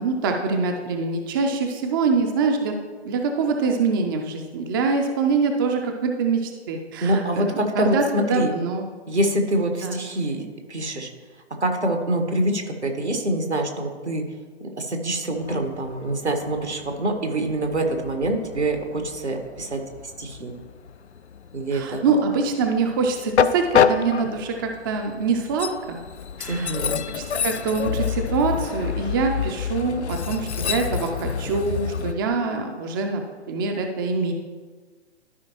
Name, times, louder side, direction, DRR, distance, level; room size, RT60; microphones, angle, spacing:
voice 1, 0.0-2.8 3.0-7.5 7.8-8.8 9.8-10.0 21.7-26.0 26.4-26.7 27.1-34.3, right 4 dB, 20° right, 4 dB, 0.4 m, -24 dB
voice 2, 7.0-8.5 9.1-11.1 11.6-14.2 14.6-19.8 20.2-20.5 21.5-22.0 26.5-27.0, right 1 dB, 85° right, 4 dB, 1.5 m, -25 dB
Train, 15.3-32.1, left 7 dB, 80° left, 0.5 m, -28 dB
13.0 x 5.2 x 3.0 m, 1.4 s
figure-of-eight pair, 125°, 33 cm